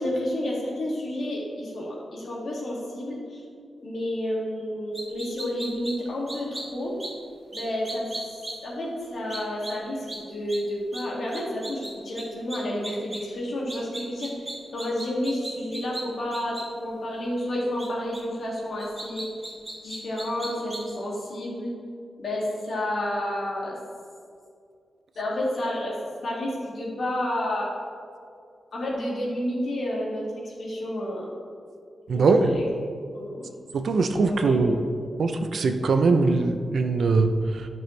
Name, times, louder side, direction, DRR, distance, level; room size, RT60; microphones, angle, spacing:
voice 1, 0.0-3.4 3.8-6.9 7.5-8.1 8.6-19.5 19.8-21.7 22.2-23.8 25.2-25.9 26.2-27.7 28.7-31.3 32.1-32.3 32.5-32.7 33.1-33.6 34.3-34.6, left 1 dB, 55° left, -4 dB, 2.3 m, -30 dB
sound 1, 4.9-5.9 6.3-6.6 7.0-7.1 7.5-8.5 9.3-9.7 10.1-10.2 10.5-10.6 10.9-11.0 11.3-11.9 12.2-12.3 12.5-13.2 13.7-16.0 16.3-16.6 17.8-17.9 18.1-18.2 18.8-20.9, right 2 dB, 20° right, 1.6 m, -36 dB
voice 2, 32.1-32.6 33.7-34.8 35.2-37.7, right 3 dB, 60° right, 7 dB, 0.6 m, -22 dB
12.5 x 6.2 x 3.3 m, 2.3 s
wide cardioid pair, 165°, 0 cm